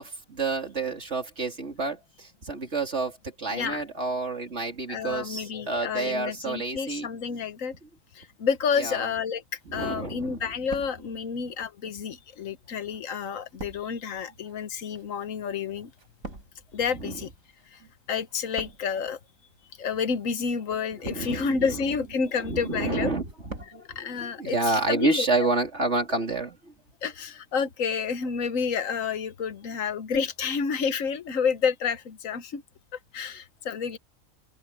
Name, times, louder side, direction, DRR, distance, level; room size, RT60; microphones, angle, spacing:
voice 1, 0.0-7.1 8.8-9.1 9.7-10.4 17.0-17.2 21.0-21.8 22.4-26.7, right 3 dB, 55° right, 3.7 m, -29 dB
voice 2, 3.5-3.8 4.9-7.7 8.1-9.4 9.7-15.9 16.7-17.3 17.7-17.8 18.1-19.2 19.8-23.1 23.9-25.3 27.0-32.6 33.1-34.0, left 6 dB, 75° left, 1.5 m, -29 dB
sound 1, 9.6-10.1 10.4-11.5 12.2-17.8 18.1-19.1 19.8-20.1 20.8-21.6 22.0-22.5 22.8-23.8 24.0-24.1, right 2 dB, 80° right, 5.1 m, -45 dB
open air
omnidirectional pair, 1.4 m